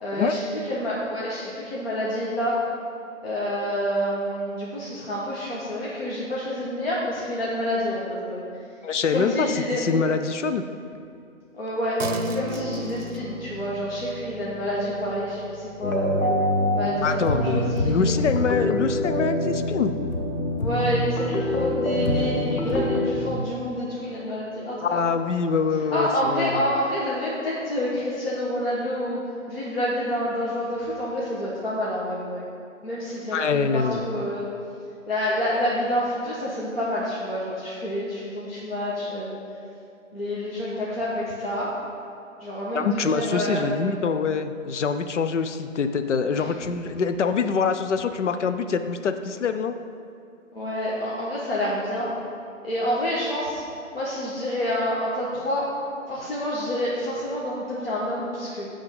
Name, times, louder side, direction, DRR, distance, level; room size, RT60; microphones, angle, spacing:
voice 1, 0.0-2.6 3.2-8.4 9.1-9.8 11.5-16.3 16.7-18.1 20.6-25.0 25.9-29.2 29.5-32.5 32.8-34.5 35.1-39.4 40.1-41.7 42.4-43.7 46.3-46.5 50.5-52.1 52.6-53.6 53.9-55.7 56.1-58.7, equal, 45° left, -7 dB, 1.4 m, -28 dB
voice 2, 8.8-10.6 17.0-19.9 24.8-26.6 33.3-34.0 42.7-49.8, left 5 dB, 65° left, 9 dB, 0.5 m, -25 dB
sound 1, 12.0-21.7, right 1 dB, 65° right, 0.7 m, -38 dB
sound 2, 15.8-23.4, left 1 dB, 85° left, 0.9 m, -25 dB
10.5 x 3.6 x 5.4 m, 2.5 s
figure-of-eight pair, 160°, 40 cm